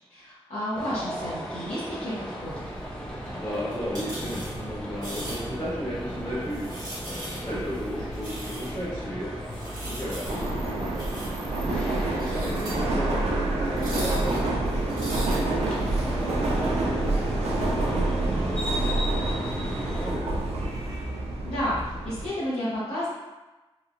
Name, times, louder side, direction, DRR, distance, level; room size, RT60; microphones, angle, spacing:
voice 1, 0.1-2.1 2.4-2.7 21.4-21.8 22.0-23.1, equal, 80° left, -12 dB, 0.8 m, -31 dB
sound 1, 0.7-20.1, equal, 10° left, 0.4 m, -37 dB
sound 2, 2.4-16.1, right 1 dB, 40° right, 1.0 m, -38 dB
voice 2, 3.3-6.7 7.3-9.3 9.8-11.0 11.7-15.1 16.0-20.4, equal, 40° left, -11 dB, 1.0 m, -35 dB
Subway metro underground, 10.3-22.3, right 2 dB, 90° right, 0.4 m, -27 dB
3.0 x 2.1 x 2.5 m, 1.1 s
wide cardioid pair, 165°, 10 cm